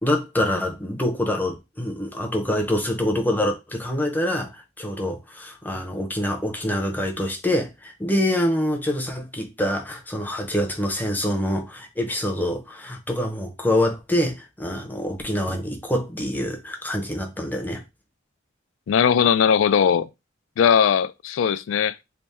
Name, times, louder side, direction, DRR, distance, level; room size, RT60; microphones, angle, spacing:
voice 1, 0.0-17.8, left 1 dB, 10° left, 0.6 m, -25 dB
voice 2, 18.9-20.1 20.6-22.0, left 7 dB, 85° left, 0.3 m, -19 dB
3.4 x 2.1 x 4.1 m
head